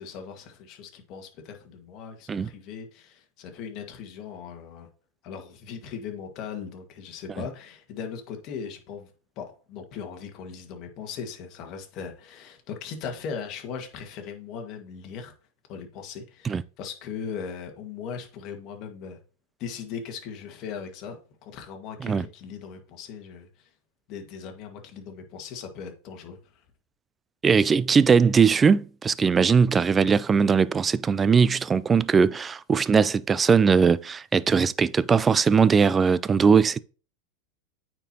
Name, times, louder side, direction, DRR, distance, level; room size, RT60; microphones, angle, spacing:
voice 1, 0.0-4.9 5.2-15.3 15.7-19.2 19.6-21.2 21.4-23.7 24.1-26.6, left 6 dB, 50° left, 1.7 m, -39 dB
voice 2, 27.4-36.8, right 6 dB, 20° right, 0.3 m, -20 dB
8.9 x 4.5 x 2.9 m
hypercardioid pair, 110°, 0 cm